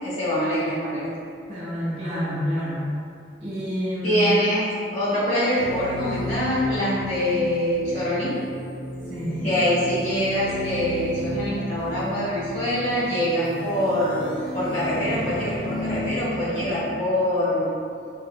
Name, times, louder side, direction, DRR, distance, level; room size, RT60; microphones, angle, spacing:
voice 1, 0.0-1.1 4.0-8.4 9.4-17.7, equal, 40° left, -10 dB, 1.5 m, -24 dB
voice 2, 1.5-2.9 3.4-4.3 9.1-9.7, equal, 40° right, -10 dB, 1.4 m, -28 dB
sound 1, 5.6-16.8, equal, 90° left, 0.6 m, -33 dB
5.2 x 2.9 x 2.3 m, 2.4 s
head